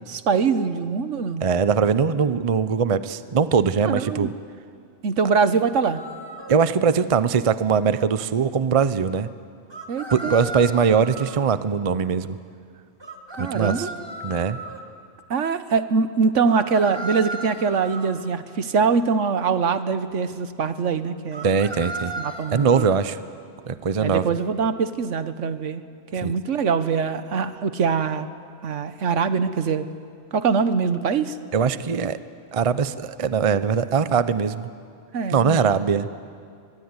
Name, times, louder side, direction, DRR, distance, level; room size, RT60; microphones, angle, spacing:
voice 1, 0.1-1.4 3.8-4.3 5.0-6.0 9.9-10.3 13.4-13.9 15.3-21.5 22.2-22.9 24.0-25.8 26.1-28.3 28.6-29.9 30.3-31.4 35.1-35.8, right 5 dB, 70° right, 11 dB, 1.3 m, -23 dB
voice 2, 1.4-4.3 6.5-9.3 10.1-12.4 13.4-13.9 14.2-14.6 21.4-22.1 22.5-23.2 23.7-24.2 26.2-26.3 31.5-32.2 32.5-34.7 35.3-36.1, right 6 dB, 35° right, 13 dB, 0.6 m, -21 dB
sound 1, 6.0-6.6 9.7-11.4 13.0-14.8 16.5-18.2 21.3-23.0, right 2 dB, 20° right, 1.8 m, -35 dB
23.5 x 22.0 x 9.7 m, 2.3 s
omnidirectional pair, 1.3 m